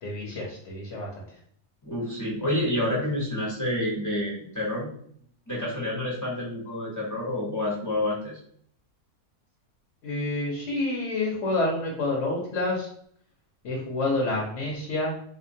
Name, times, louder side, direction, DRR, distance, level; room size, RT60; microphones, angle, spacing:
voice 1, 0.0-1.2 10.0-12.9 13.6-15.1, left 2 dB, 55° left, -2 dB, 1.1 m, -28 dB
voice 2, 1.8-4.9 5.5-8.4, left 1 dB, 15° left, -5 dB, 0.8 m, -28 dB
3.8 x 2.9 x 2.7 m, 0.62 s
omnidirectional pair, 1.7 m